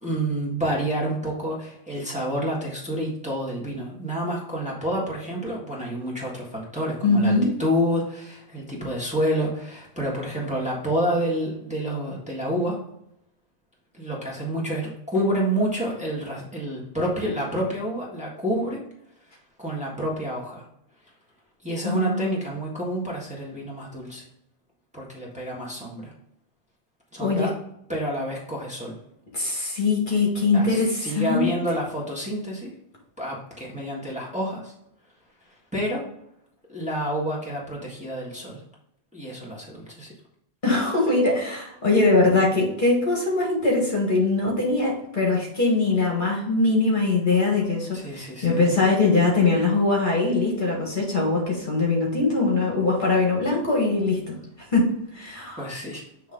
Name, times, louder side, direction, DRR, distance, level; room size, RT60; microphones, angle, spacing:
voice 1, 0.0-7.3 7.6-12.8 14.0-18.8 19.6-20.6 21.6-24.2 24.9-26.1 27.1-27.5 27.9-29.0 30.5-32.7 33.2-34.7 35.7-36.0 36.7-38.6 39.1-40.1 47.9-48.6 55.6-56.0, equal, 5° right, -5 dB, 1.6 m, -28 dB
voice 2, 7.0-7.5 21.8-22.3 27.2-27.5 29.3-31.5 40.6-54.3 54.7-55.7, left 3 dB, 45° left, -2 dB, 1.7 m, -22 dB
8.0 x 3.2 x 3.8 m, 0.76 s
omnidirectional pair, 1.1 m